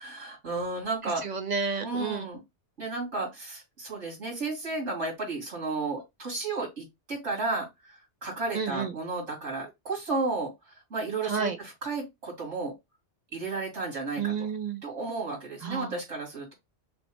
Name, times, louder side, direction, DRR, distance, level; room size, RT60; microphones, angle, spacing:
voice 1, 0.0-1.2 1.8-2.4 2.8-7.6 8.2-10.5 10.9-12.7 13.3-14.4 14.8-16.5, right 3 dB, 90° right, 2.8 m, -33 dB
voice 2, 1.0-2.2 8.5-8.9 11.2-11.6 14.2-14.8 15.6-16.0, right 5 dB, 50° right, 0.6 m, -31 dB
6.1 x 2.1 x 3.1 m
omnidirectional pair, 1.2 m